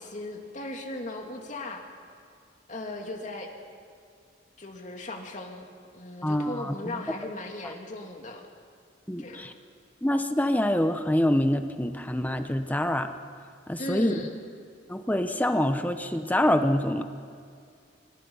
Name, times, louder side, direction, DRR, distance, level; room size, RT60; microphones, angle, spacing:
voice 1, 0.0-1.8 2.7-3.5 4.6-5.7 5.9-8.5 9.2-9.5 13.8-14.3, left 1 dB, 40° left, 2 dB, 2.7 m, -37 dB
voice 2, 6.2-6.7 9.1-9.5 10.0-13.1 13.7-14.2 14.9-17.0, left 1 dB, 10° left, 8 dB, 0.9 m, -25 dB
26.0 x 25.5 x 5.6 m, 2.3 s
head